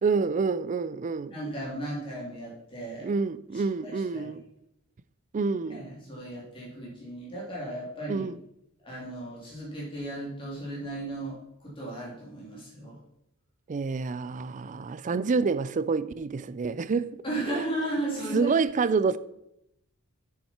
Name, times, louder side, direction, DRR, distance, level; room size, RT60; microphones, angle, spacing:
voice 1, 0.0-1.3 3.0-4.4 5.3-5.9 8.1-8.4 13.7-17.2 17.5-17.6 18.3-19.2, right 4 dB, 35° right, 0.4 m, -28 dB
voice 2, 1.3-3.1 3.5-4.3 5.7-8.3 8.8-13.0 17.2-18.5, right 1 dB, 25° left, 3.1 m, -35 dB
8.6 x 7.3 x 4.4 m
head